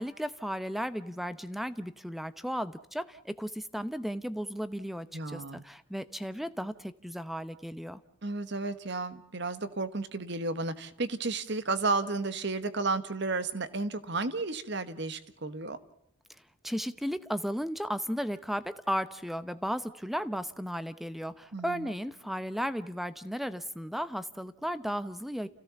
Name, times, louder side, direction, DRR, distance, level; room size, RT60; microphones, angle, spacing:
voice 1, 0.0-8.0 16.6-25.5, equal, ahead, 14 dB, 0.8 m, -35 dB
voice 2, 5.1-5.6 8.2-15.8 21.5-21.9, right 3 dB, 55° right, 13 dB, 1.4 m, -32 dB
29.5 x 16.5 x 7.0 m, 0.73 s
head